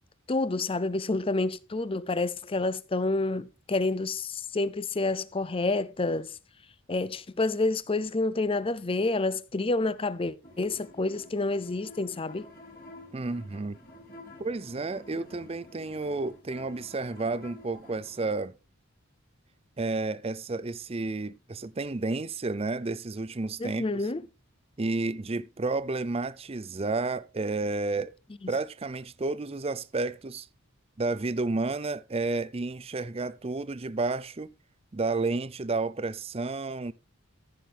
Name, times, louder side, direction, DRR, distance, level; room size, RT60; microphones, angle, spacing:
voice 1, 0.3-6.3 6.9-12.5 23.6-24.3, left 2 dB, 25° left, 0.5 m, -29 dB
sound 1, 10.4-18.3, left 1 dB, 45° left, 2.6 m, -50 dB
voice 2, 13.1-13.8 14.4-18.5 19.8-23.9 24.8-28.1 28.5-30.5 31.0-34.5 34.9-36.9, right 3 dB, 30° right, 0.5 m, -31 dB
15.0 x 6.0 x 3.4 m
head